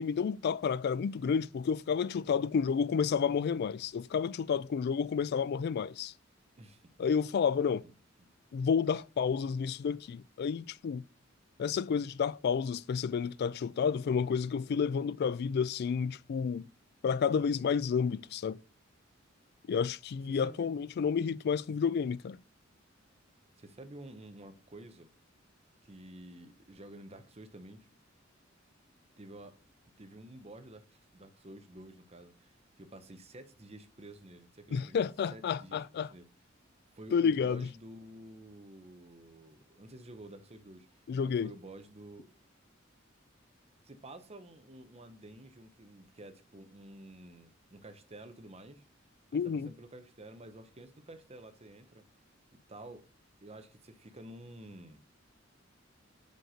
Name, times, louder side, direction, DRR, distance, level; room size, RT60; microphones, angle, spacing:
voice 1, 0.0-6.1 7.0-7.8 8.5-11.0 11.6-16.7 17.0-18.6 19.7-22.4 34.7-36.1 37.1-37.7 41.1-41.5 49.3-49.7, left 6 dB, 55° left, 0.3 m, -30 dB
voice 2, 20.3-20.7 23.6-25.1 25.8-27.9 29.2-29.5 30.0-35.0 35.3-36.3 36.9-42.3 43.8-48.9 49.3-52.0 52.7-53.1 53.4-55.0, right 1 dB, 30° right, 0.8 m, -50 dB
5.8 x 5.3 x 4.9 m
head